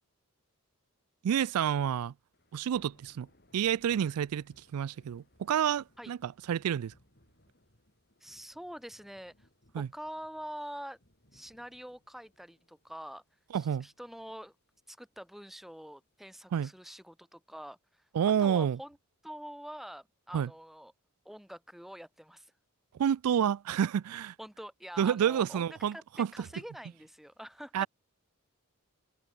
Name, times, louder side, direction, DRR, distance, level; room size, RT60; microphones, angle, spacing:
voice 1, 1.2-2.1 2.5-3.3 3.5-4.5 4.7-6.9 9.7-9.9 13.5-13.9 16.5-16.7 18.1-18.8 20.3-20.5 22.9-24.3 25.0-26.5 27.7-27.9, right 8 dB, 80° right, 0.3 m, -29 dB
Thunder / Rain, 2.3-16.3, left 1 dB, 45° left, 4.4 m, -67 dB
voice 2, 8.2-9.5 9.8-11.0 11.3-13.2 13.5-14.5 14.9-18.1 18.4-19.0 19.2-20.9 21.2-22.5 24.4-27.9, equal, ahead, 0.6 m, -45 dB
head